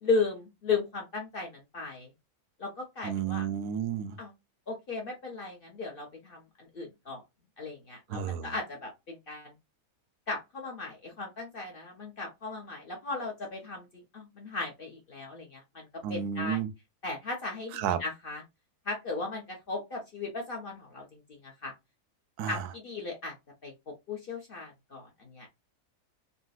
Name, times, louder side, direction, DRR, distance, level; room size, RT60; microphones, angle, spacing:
voice 1, 0.0-2.1 2.6-3.4 4.2-4.3 4.7-7.2 7.6-9.5 10.3-16.6 17.0-18.4 18.9-21.7 22.4-23.4 23.6-23.7 24.1-25.5, left 3 dB, 45° left, 0.8 m, -36 dB
voice 2, 3.0-4.2 8.1-8.5 16.0-16.7 17.7-18.0 22.4-22.7, right 8 dB, 80° right, 1.1 m, -32 dB
3.9 x 2.2 x 2.4 m
omnidirectional pair, 1.6 m